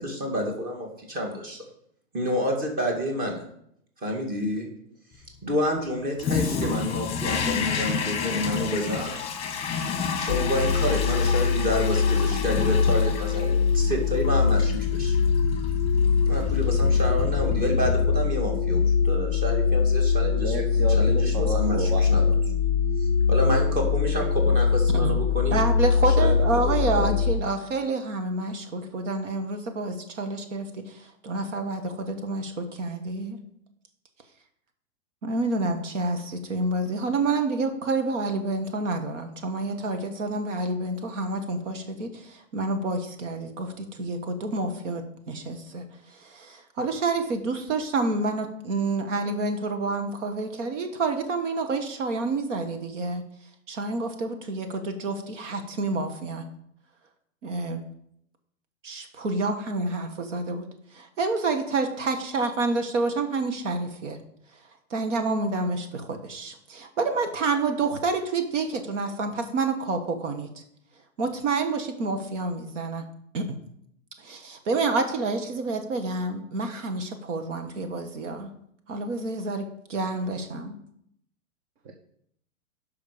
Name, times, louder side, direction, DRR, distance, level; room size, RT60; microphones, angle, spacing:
voice 1, 0.0-1.6 2.1-3.4 4.0-4.7 5.4-9.2 10.2-15.2 16.3-20.5 21.0-22.2 23.0-25.6 26.2-27.1, equal, 20° right, 2 dB, 2.2 m, -29 dB
Toilet flush, 6.2-18.5, left 5 dB, 15° left, 1.3 m, -31 dB
sound 1, 10.3-27.4, left 6 dB, 40° left, 0.5 m, -23 dB
voice 2, 20.3-22.4 81.8-81.9, right 4 dB, 35° right, 4 dB, 1.0 m, -32 dB
voice 3, 25.5-33.4 35.2-53.2 53.7-56.4 57.4-57.8 58.8-64.2 64.9-70.5 71.2-73.0 73.3-73.5 74.2-78.5 78.9-80.7, right 3 dB, 65° right, 6 dB, 1.5 m, -28 dB
10.5 x 5.7 x 5.1 m, 0.71 s
hypercardioid pair, 140°, 40 cm